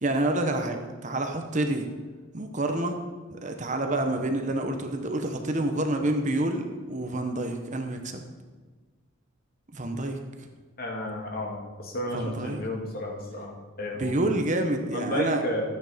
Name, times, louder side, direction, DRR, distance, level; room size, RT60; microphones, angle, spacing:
voice 1, 0.0-1.9 2.3-3.0 3.3-8.2 9.7-10.5 12.1-12.6 13.9-15.4, right 1 dB, 35° right, 5 dB, 1.1 m, -28 dB
voice 2, 10.8-14.1 14.9-15.6, left 1 dB, 45° left, 0 dB, 2.5 m, -32 dB
13.5 x 9.5 x 5.2 m, 1.4 s
head